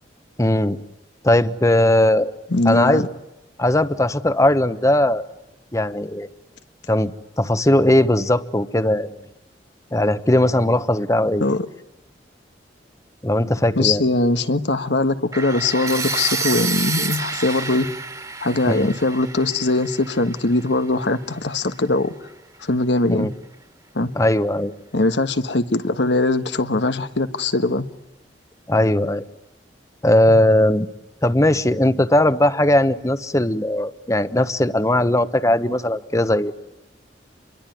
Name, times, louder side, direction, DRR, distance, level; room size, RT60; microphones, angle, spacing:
voice 1, 0.4-0.8 1.2-2.3 2.6-3.1 3.6-5.2 5.7-6.3 6.9-9.1 9.9-11.4 13.2-14.0 18.7-18.9 23.1-23.3 24.1-24.7 28.7-29.2 30.0-30.9 31.2-36.5, left 1 dB, 20° left, 1.1 m, -18 dB
voice 2, 2.5-3.1 11.4-11.7 13.8-17.9 18.4-22.1 22.6-23.3 23.9-24.1 24.9-27.9, left 2 dB, 85° left, 1.5 m, -21 dB
sound 1, 15.3-21.2, right 4 dB, 20° right, 2.1 m, -29 dB
27.5 x 23.0 x 9.3 m
head